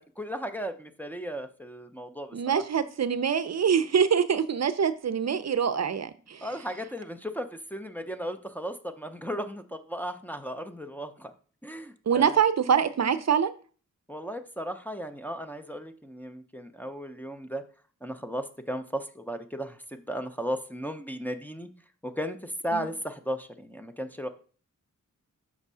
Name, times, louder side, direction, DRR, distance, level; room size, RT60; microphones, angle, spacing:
voice 1, 0.0-2.6 6.4-11.3 11.6-12.4 14.1-17.6 18.0-21.7 22.0-24.3, equal, 5° left, 0.5 m, -35 dB
voice 2, 2.3-6.5 12.1-13.5 22.7-22.8, right 7 dB, 55° right, 0.5 m, -25 dB
6.1 x 3.6 x 5.5 m
wide cardioid pair, 120°, 32 cm